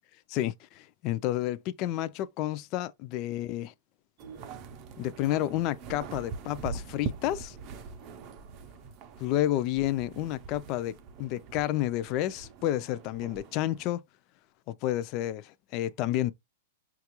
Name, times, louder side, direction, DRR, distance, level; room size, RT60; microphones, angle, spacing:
voice 1, 0.3-3.7 5.0-7.6 9.2-14.0 14.7-16.3, left 13 dB, 35° left, 0.4 m, -30 dB
sound 1, 4.2-13.9, right 5 dB, 30° right, 0.5 m, -43 dB
5.9 x 2.4 x 2.9 m
supercardioid pair, 160°, 0 cm